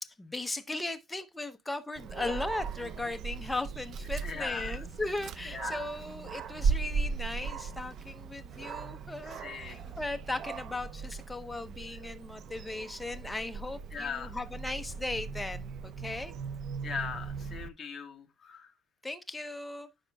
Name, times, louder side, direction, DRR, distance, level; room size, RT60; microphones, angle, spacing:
voice 1, 0.0-16.3 19.0-19.9, left 2 dB, 5° left, 0.7 m, -37 dB
Dog, 2.0-17.7, right 5 dB, 50° right, 0.5 m, -38 dB
voice 2, 4.2-4.8 5.5-5.9 9.3-9.9 13.9-14.3 16.8-18.7, left 6 dB, 25° left, 1.4 m, -39 dB
14.0 x 5.1 x 2.2 m
cardioid pair, 140°, 0 cm